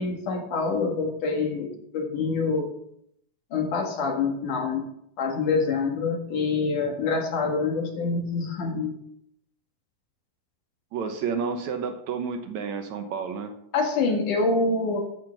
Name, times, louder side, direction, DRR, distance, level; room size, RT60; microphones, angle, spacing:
voice 1, 0.0-2.7 3.5-4.9 5.2-8.9 13.7-15.0, left 4 dB, 70° left, 2 dB, 3.3 m, -26 dB
voice 2, 10.9-13.5, right 6 dB, 70° right, 6 dB, 2.1 m, -30 dB
13.5 x 5.9 x 5.8 m, 0.74 s
omnidirectional pair, 3.7 m